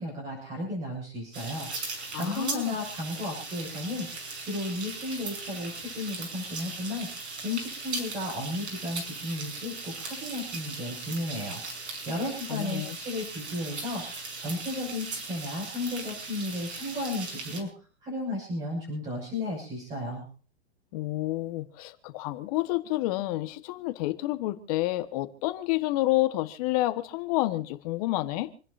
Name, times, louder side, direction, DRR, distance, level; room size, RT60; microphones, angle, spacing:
voice 1, 0.0-17.7 18.0-20.2, left 2 dB, 20° right, -3 dB, 6.9 m, -34 dB
sound 1, 1.3-17.6, right 3 dB, 90° right, 6.1 m, -38 dB
voice 2, 2.1-2.8 12.5-13.0 20.9-28.5, left 18 dB, 35° left, 10 dB, 1.4 m, -29 dB
28.5 x 11.0 x 2.7 m, 0.41 s
hypercardioid pair, 150°, 33 cm